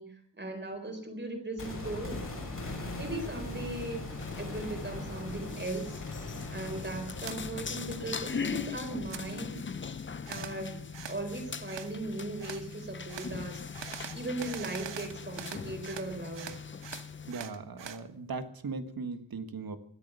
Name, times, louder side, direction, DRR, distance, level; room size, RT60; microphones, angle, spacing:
voice 1, 0.0-2.2 3.0-6.0 6.5-9.6 10.3-13.6 14.1-16.5, right 2 dB, 25° right, 4 dB, 4.1 m, -38 dB
sound 1, 1.6-11.6 11.9-12.0, left 2 dB, 45° left, 6.5 m, -42 dB
sound 2, 3.4-17.3, left 5 dB, 25° left, 0.6 m, -41 dB
sound 3, 7.2-7.4 7.8-8.6 8.8-9.2 10.2-10.6 10.9-11.2 11.7-11.9 12.4-12.6 13.1-13.3 13.7-16.1 16.3-18.0, right 8 dB, 75° right, 1.3 m, -43 dB
voice 2, 17.3-19.8, right 4 dB, 55° right, 9 dB, 1.7 m, -38 dB
24.0 x 8.5 x 6.9 m, 0.63 s
wide cardioid pair, 125°, 43 cm